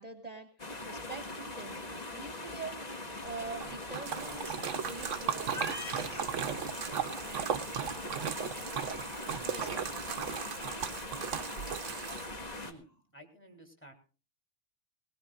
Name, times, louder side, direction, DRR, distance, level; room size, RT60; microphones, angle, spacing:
voice 1, 0.0-1.8 2.1-2.8 3.2-4.6 4.8-6.7 7.2-7.6 8.6-12.6, right 2 dB, 30° right, 6 dB, 1.5 m, -46 dB
sound 1, 0.6-12.7, left 2 dB, 35° left, 1.6 m, -41 dB
Splash splatter, 3.4-12.5, right 8 dB, 75° right, 1.2 m, -36 dB
voice 2, 12.6-13.9, right 1 dB, 10° left, 3 dB, 3.4 m, -54 dB
20.0 x 19.5 x 2.5 m, 0.35 s
omnidirectional pair, 1.3 m